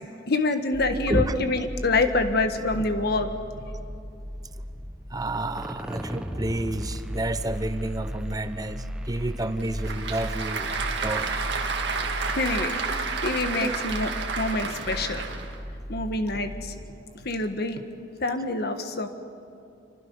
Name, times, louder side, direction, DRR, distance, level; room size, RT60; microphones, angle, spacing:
voice 1, 0.3-3.3 12.3-14.1 14.4-15.2 15.9-16.7 17.1-17.8 18.2-19.1, left 3 dB, 55° left, 7 dB, 1.5 m, -26 dB
sound 1, 0.7-16.9, equal, 5° right, 1.1 m, -36 dB
voice 2, 0.9-1.5 5.1-10.7 11.0-11.3 13.6-13.8, right 1 dB, 20° right, 11 dB, 0.7 m, -30 dB
Applause / Crowd, 9.4-15.6, right 5 dB, 65° right, 1.9 m, -31 dB
27.5 x 25.0 x 5.5 m, 2.6 s
head